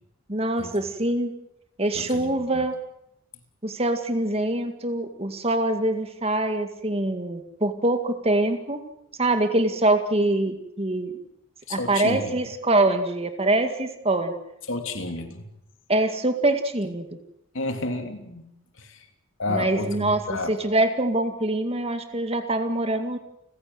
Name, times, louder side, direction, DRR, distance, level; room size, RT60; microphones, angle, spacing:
voice 1, 0.3-1.3 1.8-2.8 3.6-8.8 9.2-11.1 11.7-14.3 15.9-17.1 19.5-23.2, right 2 dB, 30° right, 7 dB, 2.0 m, -24 dB
voice 2, 1.9-2.6 11.7-12.4 14.7-15.4 17.5-18.5 18.8-19.1 19.4-20.5, left 2 dB, 65° left, 5 dB, 3.3 m, -31 dB
30.0 x 16.0 x 7.9 m, 0.80 s
head